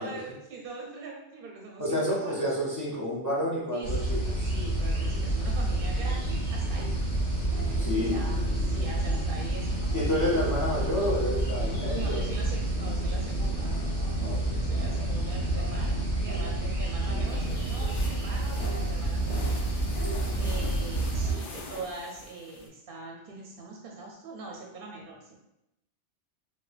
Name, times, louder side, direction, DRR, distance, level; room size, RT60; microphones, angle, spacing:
voice 1, 0.0-2.5 3.7-3.9 4.4-7.0 7.4-10.1 11.9-13.7 14.6-20.0 20.4-25.4, right 3 dB, 60° right, 0 dB, 0.7 m, -42 dB
voice 2, 1.8-4.5 7.8-8.2 9.9-12.2 14.2-14.6 20.0-20.5, left 1 dB, 20° left, -6 dB, 0.6 m, -30 dB
sound 1, 3.8-21.3, right 1 dB, 80° left, 1.4 m, -29 dB
sound 2, 17.3-22.7, left 3 dB, 60° left, 0.7 m, -44 dB
4.4 x 2.2 x 2.5 m, 0.88 s
omnidirectional pair, 1.2 m